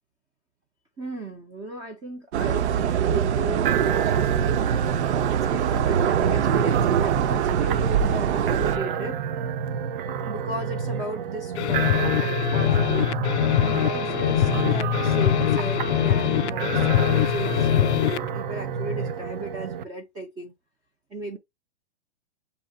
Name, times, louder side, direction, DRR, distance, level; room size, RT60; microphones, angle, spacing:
voice 1, 1.0-4.6 5.3-9.2 10.2-13.1 13.6-20.5 21.1-21.4, right 1 dB, 10° right, 0.4 m, -35 dB
sound 1, 2.3-8.8, right 8 dB, 80° right, 0.7 m, -23 dB
sound 2, 3.7-19.8, right 7 dB, 50° right, 0.7 m, -29 dB
sound 3, 11.5-18.3, left 14 dB, 80° left, 0.5 m, -23 dB
7.6 x 2.8 x 2.2 m
hypercardioid pair, 150°, 33 cm